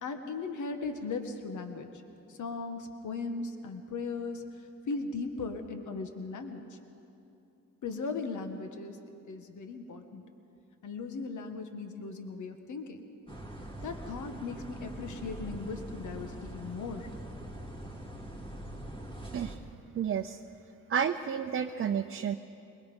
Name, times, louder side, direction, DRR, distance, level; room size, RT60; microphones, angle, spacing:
voice 1, 0.0-2.0 2.3-4.4 4.9-6.8 7.8-9.0 9.3-10.2 10.8-13.1 13.8-17.1, left 4 dB, 65° left, 6 dB, 1.5 m, -38 dB
sound 1, 13.3-19.6, right 1 dB, 15° left, 2.7 m, -43 dB
voice 2, 19.9-20.4 20.9-22.3, right 8 dB, 40° right, 5 dB, 0.6 m, -31 dB
23.5 x 20.5 x 5.4 m, 2.7 s
cardioid pair, 110°, 32 cm